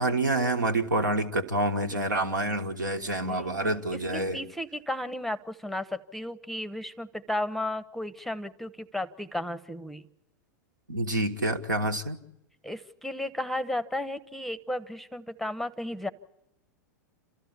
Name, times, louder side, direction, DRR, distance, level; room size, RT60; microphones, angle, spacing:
voice 1, 0.0-4.4 10.9-12.2, right 2 dB, 85° right, 6 dB, 1.5 m, -27 dB
voice 2, 3.2-3.5 3.9-10.0 12.6-16.1, left 1 dB, ahead, 14 dB, 0.7 m, -34 dB
27.5 x 14.0 x 8.3 m, 0.85 s
figure-of-eight pair, 95°, 10 cm